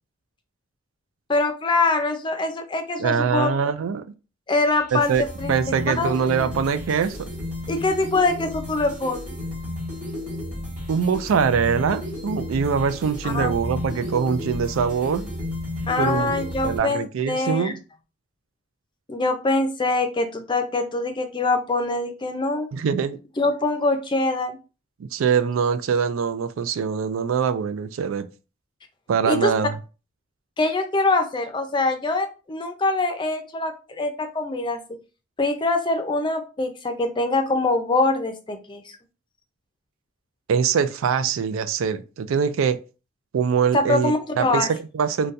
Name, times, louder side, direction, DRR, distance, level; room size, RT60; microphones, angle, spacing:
voice 1, 1.3-3.5 4.5-5.5 6.0-6.1 7.7-9.3 13.2-13.5 15.9-17.7 19.1-22.7 23.4-24.6 29.2-29.5 30.6-34.8 35.4-38.8 43.7-44.7, left 2 dB, 25° left, 0.5 m, -24 dB
voice 2, 3.0-4.0 4.9-7.3 10.9-15.3 16.0-16.3 16.6-17.8 22.7-23.2 25.0-28.3 29.1-29.8 40.5-42.8 43.3-45.3, right 6 dB, 85° right, 0.3 m, -23 dB
sound 1, 4.8-16.8, left 1 dB, 40° right, 1.8 m, -33 dB
3.9 x 2.2 x 2.5 m
head